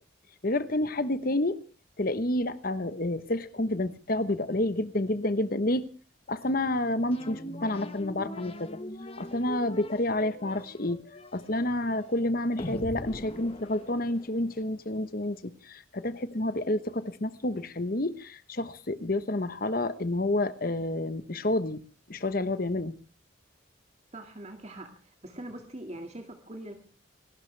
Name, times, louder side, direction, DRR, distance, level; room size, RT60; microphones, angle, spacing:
voice 1, 0.4-1.6 2.0-5.8 6.3-8.8 9.2-11.0 11.3-21.8 22.1-23.0, left 1 dB, 45° left, 1.1 m, -29 dB
sound 1, 7.1-14.6, left 1 dB, 30° left, 1.3 m, -41 dB
voice 2, 24.1-26.7, right 1 dB, 35° right, 2.1 m, -42 dB
28.0 x 12.5 x 3.4 m
head